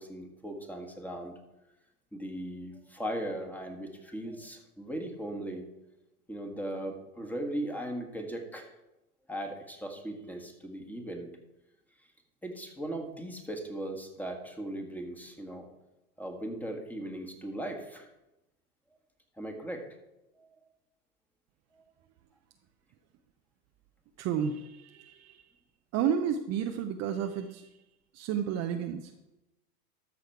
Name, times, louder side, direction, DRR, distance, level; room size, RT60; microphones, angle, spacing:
voice 1, 0.0-1.4 2.1-5.7 6.3-8.7 9.3-11.3 12.0-12.1 12.4-15.7 16.2-18.1 19.4-19.9 20.3-20.5 21.7-21.8, right 1 dB, 5° left, 3 dB, 1.6 m, -38 dB
voice 2, 24.2-25.5 25.9-27.7 28.1-29.1, right 8 dB, 35° right, 5 dB, 0.7 m, -31 dB
13.5 x 6.5 x 4.7 m, 0.95 s
hypercardioid pair, 105°, 47 cm